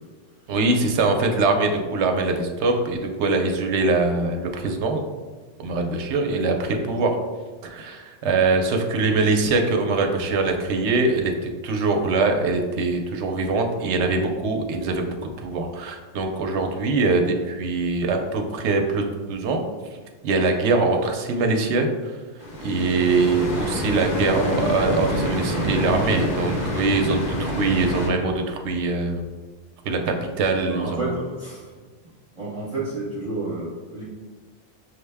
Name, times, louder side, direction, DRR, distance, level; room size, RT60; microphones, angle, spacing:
voice 1, 0.5-5.0 5.6-7.2 7.6-19.6 20.2-22.2 22.6-29.2 29.8-31.1, right 3 dB, 70° right, 4 dB, 0.8 m, -23 dB
sound 1, 22.4-28.1, equal, 45° left, 0.8 m, -27 dB
voice 2, 25.4-26.0 30.6-31.8 32.3-34.0, right 2 dB, 30° right, -8 dB, 0.9 m, -31 dB
6.1 x 2.1 x 3.3 m, 1.4 s
omnidirectional pair, 1.2 m